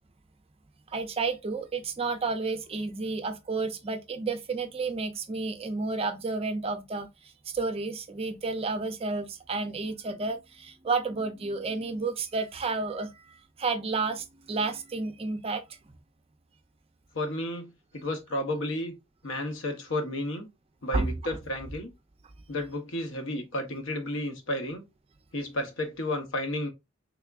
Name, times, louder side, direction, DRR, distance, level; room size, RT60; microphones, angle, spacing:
voice 1, 0.9-7.1 7.5-13.1 13.6-15.6 20.9-21.4, right 3 dB, 30° right, 0.5 m, -31 dB
voice 2, 17.1-18.9 19.2-20.5 20.8-21.9 22.5-24.8 25.3-26.7, left 1 dB, 70° left, 0.9 m, -32 dB
3.5 x 3.4 x 2.4 m
head